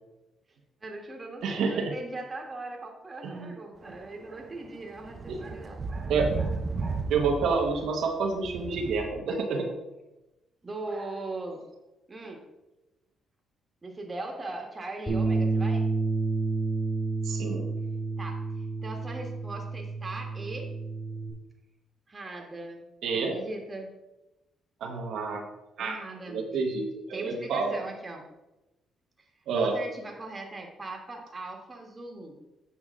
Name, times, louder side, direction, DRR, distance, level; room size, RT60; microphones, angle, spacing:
voice 1, 0.8-7.1 10.6-11.6 12.1-12.4 13.8-15.9 18.2-20.7 22.1-22.9 23.3-23.9 25.8-26.4 27.1-28.3 29.2-29.3 29.5-32.4, right 2 dB, 25° right, 1 dB, 1.4 m, -40 dB
voice 2, 1.4-1.9 3.2-3.5 5.3-5.4 6.1-6.3 7.1-9.7 17.2-17.6 23.0-23.4 24.8-25.4 25.8-26.0 26.3-27.7 29.5-29.8, right 4 dB, 75° right, 1 dB, 1.0 m, -28 dB
sound 1, 3.9-4.0 4.5-9.1, right 4 dB, 45° right, 0.7 m, -34 dB
Bass guitar, 15.1-21.3, right 3 dB, 20° left, 2.7 m, -30 dB
8.2 x 5.0 x 3.6 m, 1.0 s
cardioid pair, 90°, 0 cm